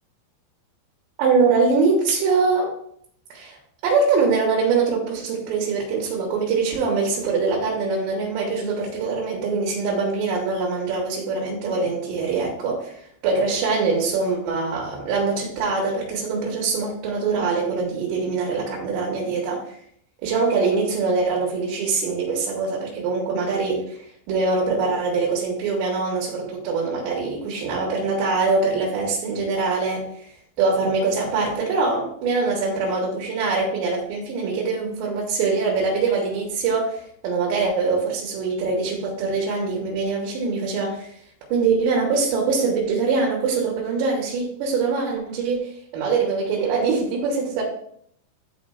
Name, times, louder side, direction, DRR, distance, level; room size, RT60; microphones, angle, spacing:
voice 1, 1.2-2.8 3.3-3.6 3.8-19.8 20.2-24.0 24.3-30.3 30.6-41.1 41.5-45.6 45.9-47.6, right 4 dB, 85° right, -2 dB, 3.5 m, -23 dB
11.5 x 4.2 x 2.4 m, 0.67 s
omnidirectional pair, 4.9 m